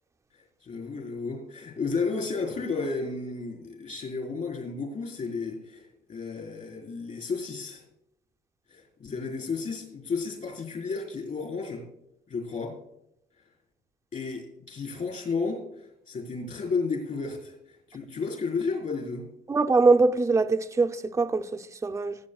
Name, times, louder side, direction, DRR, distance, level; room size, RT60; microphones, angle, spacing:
voice 1, 0.6-7.8 8.7-11.8 12.3-12.8 14.1-15.6 16.1-17.5 17.9-19.3, left 4 dB, 45° left, 4.5 m, -32 dB
voice 2, 19.5-22.2, right 3 dB, 15° right, 0.6 m, -23 dB
20.5 x 8.6 x 2.4 m
cardioid pair, 110°, 17 cm